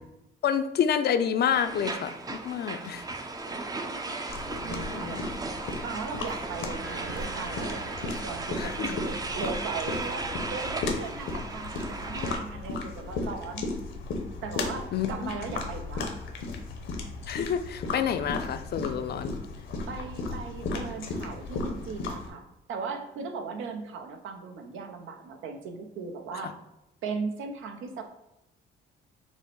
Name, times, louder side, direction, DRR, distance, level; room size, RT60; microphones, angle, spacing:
voice 1, 0.4-3.1 4.5-5.2 8.6-9.0 14.9-15.5 17.3-19.4 26.3-26.5, left 8 dB, 55° left, 9 dB, 0.5 m, -29 dB
sound 1, 1.5-12.4, right 3 dB, 20° right, 0.5 m, -36 dB
voice 2, 3.5-4.2 4.6-5.2 5.8-13.7 14.4-16.1 19.9-22.4 22.7-26.5 27.0-28.0, right 5 dB, 80° right, 4 dB, 0.7 m, -38 dB
sound 2, 4.3-22.3, left 3 dB, 75° left, 0.9 m, -35 dB
sound 3, 6.8-10.3, right 4 dB, 50° right, 1.1 m, -47 dB
5.4 x 2.1 x 4.5 m, 0.90 s
cardioid pair, 90°, 20 cm